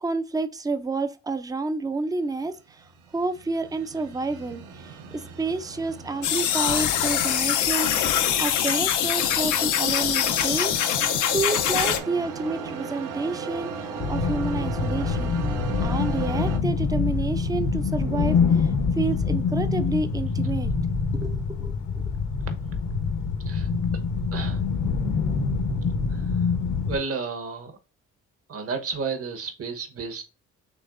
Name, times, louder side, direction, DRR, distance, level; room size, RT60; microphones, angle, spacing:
voice 1, 0.0-2.8 3.1-8.0 8.4-11.0 11.3-13.7 14.1-15.4 15.8-20.7 21.1-22.0, right 3 dB, 10° right, 0.5 m, -29 dB
sound 1, 2.5-16.6, right 5 dB, 80° right, 0.8 m, -37 dB
sound 2, 6.2-12.0, left 10 dB, 85° left, 0.7 m, -23 dB
sound 3, 14.0-27.0, left 5 dB, 70° left, 1.0 m, -25 dB
voice 2, 24.3-24.7 26.1-26.4 26.9-27.8 28.5-30.2, right 4 dB, 50° right, 1.1 m, -32 dB
6.1 x 3.1 x 2.5 m
cardioid pair, 90°, 30 cm